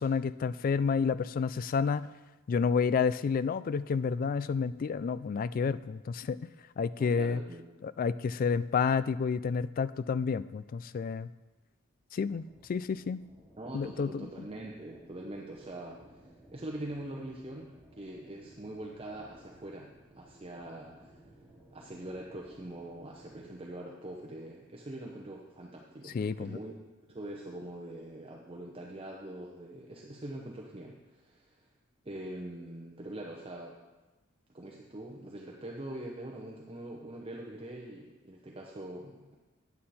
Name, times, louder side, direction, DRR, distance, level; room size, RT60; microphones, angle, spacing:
voice 1, 0.0-2.1 2.5-6.4 6.8-7.4 7.8-11.3 12.1-13.2 13.7-14.5 26.1-26.6, left 5 dB, 40° left, 16 dB, 0.3 m, -30 dB
voice 2, 7.0-7.6 13.6-17.7 18.0-21.2 21.7-26.7 27.1-31.7 32.0-33.8 34.5-39.3, right 1 dB, 25° right, -1 dB, 0.8 m, -43 dB
sound 1, 12.2-23.5, right 1 dB, 5° right, 2.4 m, -58 dB
9.4 x 8.7 x 4.3 m, 1.1 s
head